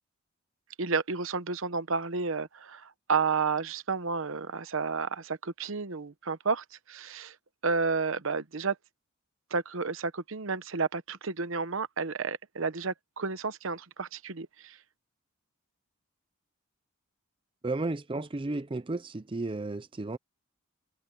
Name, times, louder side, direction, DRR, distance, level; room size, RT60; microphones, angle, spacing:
voice 1, 0.8-7.3 7.6-8.7 9.5-14.8, right 4 dB, 65° right, 0.9 m, -31 dB
voice 2, 17.6-20.2, right 2 dB, 25° right, 0.5 m, -33 dB
head